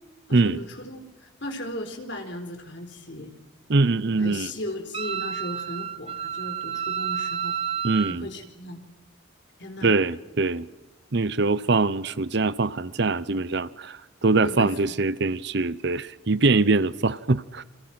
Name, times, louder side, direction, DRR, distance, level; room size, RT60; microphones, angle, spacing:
voice 1, 0.3-1.1 1.4-3.3 4.2-7.6 8.1-8.8 9.6-10.0 14.4-15.0, left 1 dB, 55° left, 4.2 m, -36 dB
voice 2, 3.7-4.5 7.8-8.3 9.8-10.7 11.1-17.6, right 3 dB, 55° right, 0.7 m, -23 dB
Wind instrument woodwind instrument, 4.9-8.2, right 8 dB, 30° right, 1.0 m, -30 dB
29.5 x 25.0 x 6.1 m
head